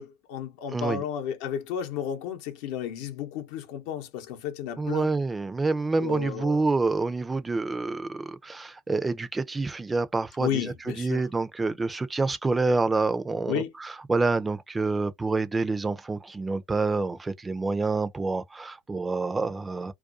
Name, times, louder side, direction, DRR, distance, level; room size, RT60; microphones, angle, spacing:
voice 1, 0.0-5.1 6.0-6.6 10.4-11.3 13.5-13.7, left 9 dB, 70° left, 0.7 m, -33 dB
voice 2, 0.7-1.0 4.8-19.9, right 3 dB, 15° right, 0.4 m, -27 dB
2.4 x 2.2 x 2.5 m
hypercardioid pair, 95°, 0 cm